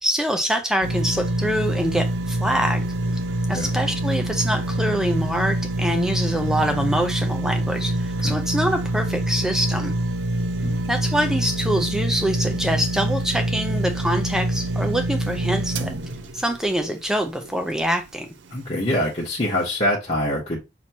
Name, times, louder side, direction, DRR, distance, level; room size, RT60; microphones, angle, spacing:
voice 1, 0.0-2.8 3.5-9.9 10.9-15.9 16.3-18.3, equal, 5° right, 0.6 m, -25 dB
sound 1, 0.8-18.0 18.5-18.6, right 1 dB, 75° right, 0.4 m, -25 dB
voice 2, 10.6-10.9 18.5-20.6, left 1 dB, 35° left, 1.2 m, -25 dB
6.0 x 2.9 x 2.9 m
head